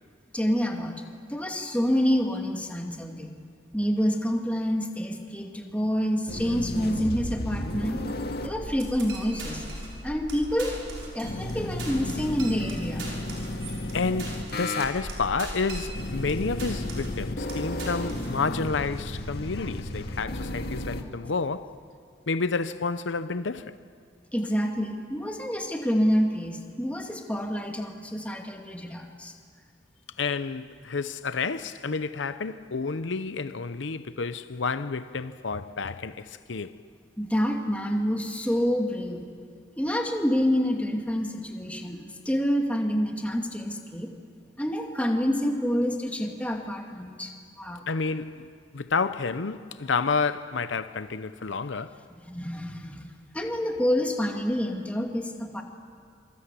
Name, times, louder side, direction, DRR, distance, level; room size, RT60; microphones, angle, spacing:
voice 1, 0.3-1.0 1.3-3.3 3.7-8.0 8.4-9.7 10.0-10.7 11.1-13.0 24.3-29.3 37.2-39.2 39.8-44.1 44.6-47.8 52.2-55.6, equal, 5° left, 2.3 m, -27 dB
sound 1, 6.3-21.0, left 1 dB, 55° left, 2.1 m, -34 dB
sound 2, 8.8-10.0 10.3-10.4 10.6-11.5 11.8-16.3 16.6-17.2 17.5-18.3, right 3 dB, 85° right, 6.2 m, -41 dB
voice 2, 13.9-21.7 22.3-23.8 30.2-36.8 47.9-52.0, left 4 dB, 75° left, 0.7 m, -30 dB
26.5 x 25.0 x 8.3 m
head